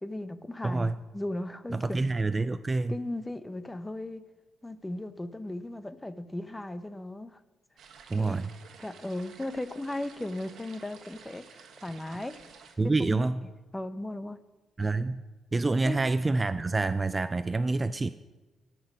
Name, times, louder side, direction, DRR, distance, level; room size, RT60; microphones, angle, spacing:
voice 1, 0.0-2.0 2.9-4.2 4.6-7.4 8.2-8.4 8.8-12.4 13.0-13.3 13.7-14.4 15.9-16.0, left 1 dB, 15° left, 13 dB, 0.7 m, -37 dB
voice 2, 0.6-1.0 1.7-3.0 8.1-8.5 12.8-13.5 14.8-15.2 15.5-18.1, right 3 dB, 25° right, 13 dB, 0.3 m, -27 dB
sound 1, 7.8-12.7, right 6 dB, 70° right, 1.3 m, -52 dB
17.5 x 6.2 x 5.4 m, 1.2 s
cardioid pair, 90°, 0 cm